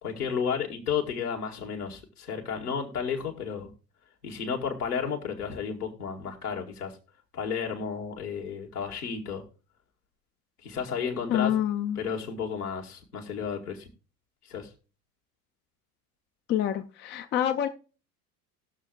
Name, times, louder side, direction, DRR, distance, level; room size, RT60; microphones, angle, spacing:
voice 1, 0.0-3.7 4.2-6.9 7.3-9.4 10.6-11.5 12.0-13.9 14.5-14.7, left 6 dB, 75° left, 1.8 m, -32 dB
voice 2, 11.3-12.0 16.5-17.7, left 10 dB, 25° left, 0.5 m, -27 dB
19.5 x 6.5 x 2.3 m
figure-of-eight pair, 75°, 46 cm